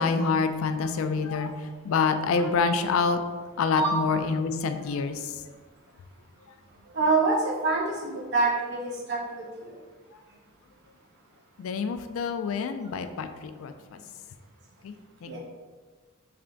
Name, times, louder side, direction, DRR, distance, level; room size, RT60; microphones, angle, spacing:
voice 1, 0.0-1.5 1.9-3.2 3.6-5.4 11.6-13.7 14.8-14.9 15.2-15.4, left 5 dB, 75° left, 9 dB, 0.3 m, -26 dB
voice 2, 3.8-4.2 6.9-9.7 15.3-15.4, right 3 dB, 55° right, -5 dB, 0.8 m, -26 dB
3.4 x 3.3 x 3.8 m, 1.4 s
head